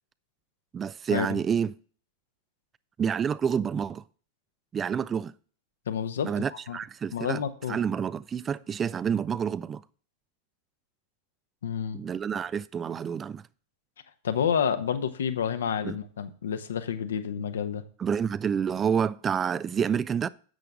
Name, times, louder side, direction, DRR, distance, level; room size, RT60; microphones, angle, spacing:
voice 1, 0.7-1.7 3.0-4.0 4.7-5.3 6.2-7.4 7.7-9.8 11.9-13.5 15.8-16.0 18.0-20.3, right 7 dB, 20° right, 0.3 m, -28 dB
voice 2, 5.9-6.3 6.7-6.8 7.1-7.8 11.6-12.0 14.2-17.8, left 7 dB, 65° left, 1.1 m, -29 dB
10.5 x 7.9 x 3.6 m
figure-of-eight pair, 90°, 0 cm